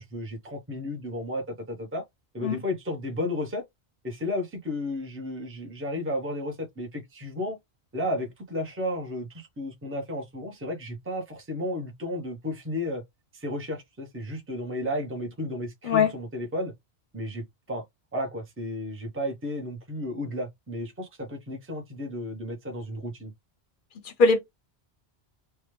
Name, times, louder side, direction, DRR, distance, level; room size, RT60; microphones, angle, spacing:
voice 1, 0.0-2.0 2.3-3.6 4.0-7.6 7.9-13.0 13.3-16.7 17.1-17.8 18.1-23.3, left 1 dB, 15° right, 0.7 m, -33 dB
voice 2, 15.8-16.1 24.0-24.4, left 4 dB, 55° left, 0.8 m, -21 dB
3.2 x 2.2 x 3.1 m
omnidirectional pair, 1.1 m